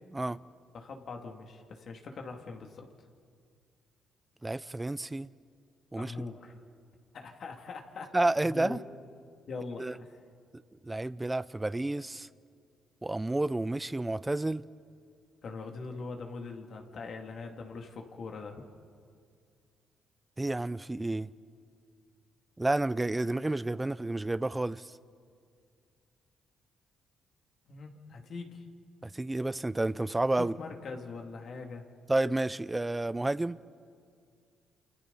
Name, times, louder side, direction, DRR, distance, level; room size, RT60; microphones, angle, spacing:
voice 1, 0.7-2.9 6.0-6.6 7.1-8.1 8.4-8.8 9.5-10.2 15.4-18.6 27.7-28.7 30.4-31.9, left 4 dB, 55° left, 2.5 m, -42 dB
voice 2, 4.4-5.3 5.9-6.1 8.1-8.8 9.8-9.9 10.8-12.3 13.0-14.6 20.4-21.3 22.6-24.9 29.0-30.5 32.1-33.6, right 2 dB, 15° right, 0.5 m, -30 dB
29.0 x 27.5 x 4.1 m
cardioid pair, 90°, 0 cm